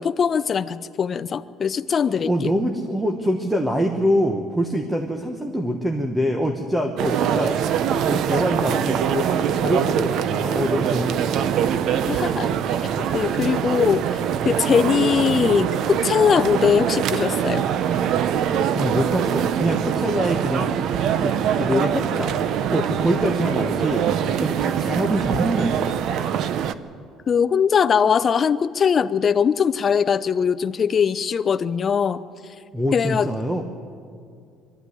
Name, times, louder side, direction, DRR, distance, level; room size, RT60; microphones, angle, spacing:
voice 1, 0.0-2.5 12.1-12.5 13.1-17.6 27.3-32.2 32.9-33.3, left 7 dB, 30° left, 13 dB, 0.6 m, -21 dB
voice 2, 2.3-7.6 8.0-11.5 18.7-20.7 21.2-22.3 22.7-24.1 24.4-25.8 32.7-33.6, equal, 10° right, 4 dB, 1.1 m, -24 dB
sound 1, 7.0-26.7, right 8 dB, 55° right, 0.8 m, -23 dB
22.5 x 13.5 x 9.8 m, 2.3 s
cardioid pair, 145°, 0 cm